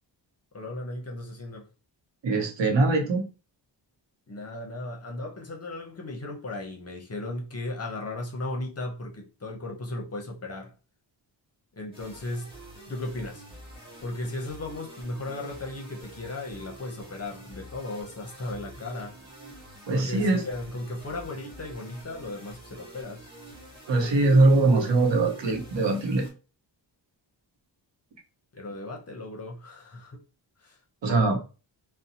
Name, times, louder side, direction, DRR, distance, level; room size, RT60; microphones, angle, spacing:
voice 1, 0.5-1.7 4.3-10.7 11.7-12.5 12.9-13.5 14.0-19.2 19.9-23.3 28.5-30.2 30.6-30.8, left 2 dB, 35° left, 0.6 m, -36 dB
voice 2, 2.2-3.3 19.9-20.4 23.9-26.3 31.0-31.4, right 2 dB, 70° right, 0.8 m, -22 dB
sound 1, 11.9-26.3, right 1 dB, 10° right, 1.0 m, -47 dB
2.6 x 2.0 x 2.7 m
wide cardioid pair, 140°, 45 cm